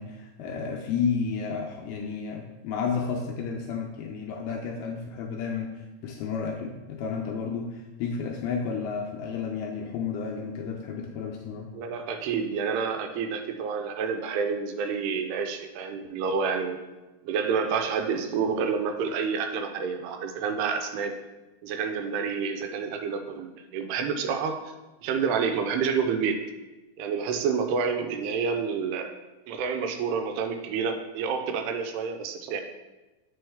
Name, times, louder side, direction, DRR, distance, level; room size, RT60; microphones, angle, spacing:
voice 1, 0.0-11.7, left 5 dB, 80° left, 1 dB, 2.2 m, -32 dB
voice 2, 11.7-16.8 17.2-21.1 21.6-24.6 25.0-26.4 27.0-29.1 29.5-32.6, right 6 dB, 85° right, 6 dB, 2.6 m, -28 dB
7.7 x 5.2 x 3.5 m, 1.1 s
omnidirectional pair, 4.7 m